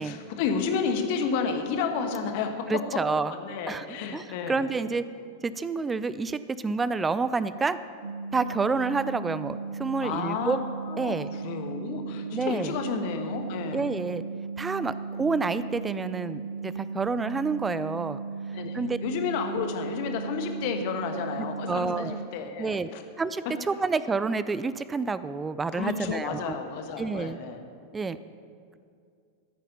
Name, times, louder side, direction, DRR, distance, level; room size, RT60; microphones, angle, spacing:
voice 1, 0.0-2.5 3.3-4.7 10.0-10.6 10.9-13.9 18.5-23.0 25.8-27.6, left 6 dB, 45° left, 5 dB, 1.3 m, -31 dB
voice 2, 2.7-3.3 3.7-3.8 4.1-5.0 5.4-7.8 8.3-10.6 11.0-11.3 12.3-12.7 13.7-14.2 14.6-18.2 18.7-19.0 21.7-22.2 22.6-22.9 23.2-26.6 27.0-27.4 27.9-28.2, right 4 dB, 15° right, 15 dB, 0.4 m, -28 dB
sound 1, 8.0-22.3, right 5 dB, 70° right, 0.5 m, -36 dB
14.5 x 9.1 x 5.5 m, 2.3 s
figure-of-eight pair, 90°, 0 cm